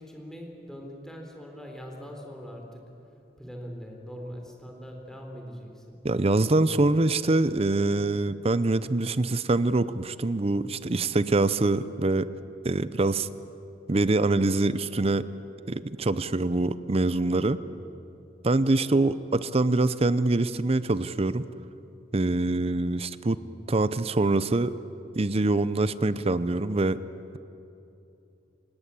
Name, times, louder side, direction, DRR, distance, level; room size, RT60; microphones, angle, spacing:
voice 1, 0.0-2.9 3.4-6.1, equal, 5° left, 1 dB, 3.6 m, -42 dB
voice 2, 6.0-12.3 12.6-13.3 13.9-15.2 15.7-17.6 18.4-21.4 22.1-23.4 23.7-24.7 25.2-27.0, right 2 dB, 35° right, 15 dB, 0.6 m, -24 dB
26.5 x 19.0 x 8.4 m, 2.8 s
head